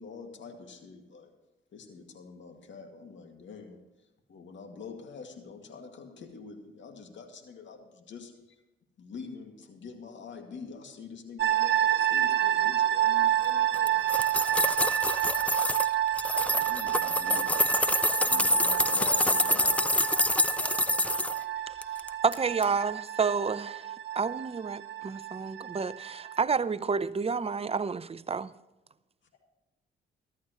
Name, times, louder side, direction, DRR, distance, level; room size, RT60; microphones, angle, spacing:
voice 1, 0.0-1.3 1.7-3.9 4.3-8.6 9.0-15.5 16.4-17.9 18.3-20.0 21.6-21.7, left 5 dB, 65° left, 2.2 m, -46 dB
sound 1, 11.4-26.4, right 12 dB, 60° right, 1.2 m, -29 dB
sound 2, 13.7-15.9 16.2-21.4 21.8-22.4 22.6-22.7, left 1 dB, 5° left, 0.6 m, -27 dB
voice 2, 18.1-18.5 20.6-21.5 21.9-22.0 29.3-29.4, left 6 dB, 90° left, 2.9 m, -53 dB
voice 3, 22.2-28.5, right 5 dB, 30° right, 0.7 m, -30 dB
14.5 x 13.0 x 3.1 m
cardioid pair, 65°, 21 cm